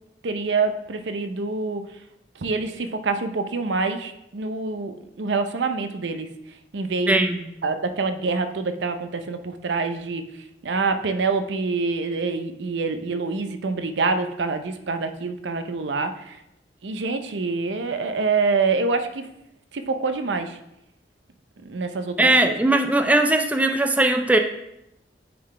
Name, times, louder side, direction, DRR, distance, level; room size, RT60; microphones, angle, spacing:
voice 1, 0.2-1.8 2.4-6.3 6.7-10.3 10.6-16.4 16.8-19.2 19.7-20.6 21.6-22.6, right 4 dB, 85° right, 8 dB, 0.6 m, -26 dB
voice 2, 7.1-7.4 22.2-24.4, right 2 dB, 10° right, 5 dB, 0.3 m, -19 dB
9.4 x 3.9 x 3.2 m, 0.83 s
head